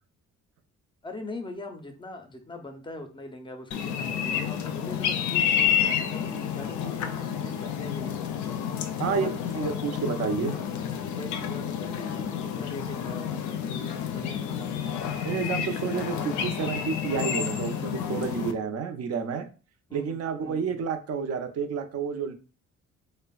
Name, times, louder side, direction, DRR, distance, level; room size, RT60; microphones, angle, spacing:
voice 1, 1.0-8.2 8.8-9.3 10.0-10.1 10.5-10.7 11.0-15.3 19.9-20.8, left 2 dB, 15° left, 4 dB, 0.5 m, -42 dB
sound 1, 3.7-18.5, left 8 dB, 75° left, 0.4 m, -30 dB
voice 2, 9.6-10.5 15.2-19.5 19.9-22.3, right 6 dB, 55° right, 8 dB, 0.5 m, -30 dB
3.2 x 2.1 x 2.3 m, 0.36 s
cardioid pair, 90°, 30 cm